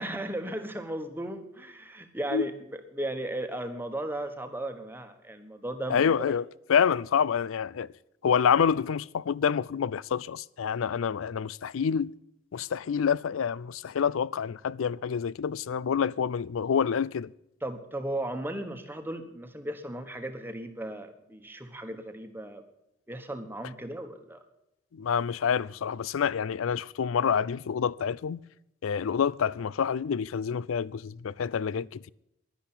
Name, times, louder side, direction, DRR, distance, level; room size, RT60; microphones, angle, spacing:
voice 1, 0.0-6.2 17.6-22.6 23.1-24.4 31.7-31.9, right 1 dB, 10° right, 1.2 m, -36 dB
voice 2, 5.9-7.9 8.2-12.1 12.5-17.3 24.9-28.4 28.8-32.1, left 7 dB, 80° left, 0.4 m, -27 dB
11.0 x 10.5 x 8.6 m
head